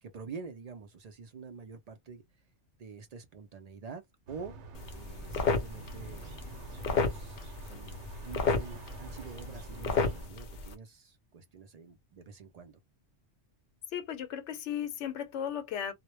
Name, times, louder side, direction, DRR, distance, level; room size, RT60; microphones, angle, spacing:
voice 1, 0.0-2.2 2.8-4.6 4.9-6.5 6.8-12.8, right 5 dB, 65° right, 0.4 m, -47 dB
sound 1, 4.3-10.3, right 3 dB, 85° right, 0.9 m, -48 dB
sound 2, 4.7-10.7, left 4 dB, 55° left, 0.6 m, -33 dB
voice 2, 13.9-15.9, left 9 dB, 90° left, 0.9 m, -35 dB
2.1 x 2.0 x 2.9 m
omnidirectional pair, 1.2 m